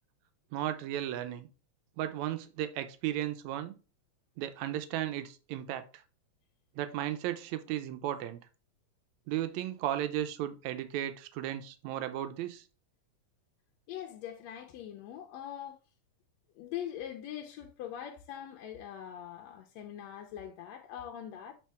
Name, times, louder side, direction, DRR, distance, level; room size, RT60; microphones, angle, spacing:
voice 1, 0.5-1.5 2.0-3.8 4.4-6.0 6.8-8.4 9.3-12.6, right 12 dB, 85° right, 1.9 m, -35 dB
voice 2, 13.9-15.8 16.6-21.5, left 10 dB, 80° left, 1.8 m, -42 dB
7.5 x 4.2 x 3.4 m
omnidirectional pair, 3.3 m